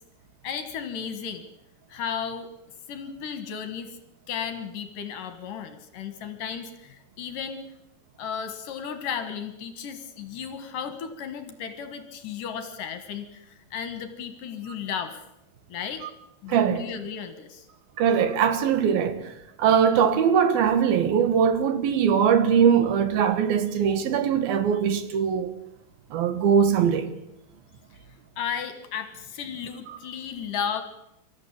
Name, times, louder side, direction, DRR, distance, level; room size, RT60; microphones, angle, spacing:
voice 1, 0.4-1.4 1.9-2.5 2.9-4.0 4.3-7.6 8.2-15.2 15.7-16.0 16.4-17.7 28.4-30.8, left 7 dB, 65° left, 2.7 m, -34 dB
voice 2, 16.5-16.8 18.0-19.3 19.6-25.5 26.1-27.1, right 7 dB, 70° right, 3.1 m, -21 dB
25.0 x 14.0 x 8.6 m
omnidirectional pair, 4.7 m